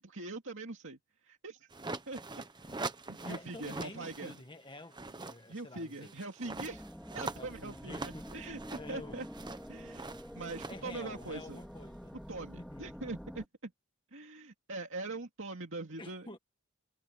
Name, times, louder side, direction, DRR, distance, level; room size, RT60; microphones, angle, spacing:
voice 1, 0.0-1.7 2.1-2.7 3.1-4.3 5.5-6.9 7.1-8.6 8.9-9.3 9.7-11.6 12.3-13.7 14.1-16.3, right 3 dB, 65° right, 2.5 m, -42 dB
sound 1, 1.7-4.4 4.8-11.8, right 3 dB, 20° right, 1.0 m, -43 dB
voice 2, 2.7-6.1 7.4-8.3 8.8-9.2 10.7-12.2 12.6-13.0 16.0-16.4, left 2 dB, 25° left, 1.9 m, -49 dB
sound 2, 6.5-13.4, equal, ahead, 2.3 m, -48 dB
head